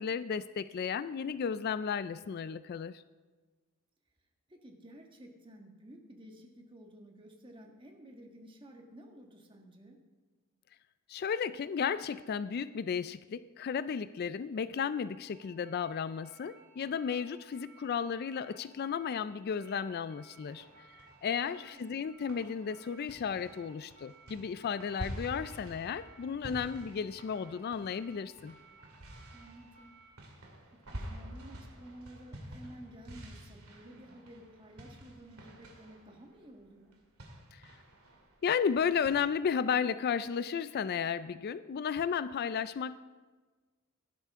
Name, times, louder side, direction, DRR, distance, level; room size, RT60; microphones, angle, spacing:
voice 1, 0.0-3.0 11.1-20.7 21.2-28.6 37.5-37.7 38.4-43.0, left 7 dB, 45° left, 15 dB, 0.3 m, -34 dB
voice 2, 4.5-10.0 21.4-21.8 29.3-29.9 30.7-37.0, right 1 dB, 25° right, 2 dB, 1.5 m, -53 dB
sound 1, 15.3-30.1, right 3 dB, 40° right, 3.7 m, -60 dB
sound 2, 20.4-21.9 22.3-39.1, equal, 80° right, 2.5 m, -49 dB
16.5 x 12.0 x 3.6 m, 1.3 s
head